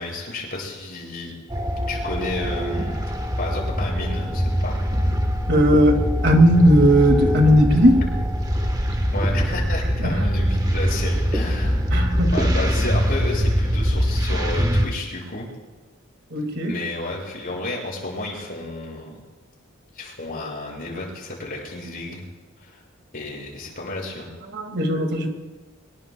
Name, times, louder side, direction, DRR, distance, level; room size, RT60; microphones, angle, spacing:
voice 1, 0.0-1.3 1.9-3.1 3.4-4.8 7.7-7.9 9.1-12.0 12.3-15.5 16.7-19.1 19.9-22.3 22.6-22.8 23.1-24.3, left 2 dB, 45° left, -2 dB, 6.9 m, -31 dB
sound 1, 1.5-14.9, equal, 20° right, 1.3 m, -23 dB
voice 2, 5.5-8.0 10.0-10.2 11.9-12.5 16.3-16.8 24.5-25.3, equal, 55° right, 3 dB, 2.3 m, -17 dB
25.0 x 22.0 x 2.3 m, 1.3 s
head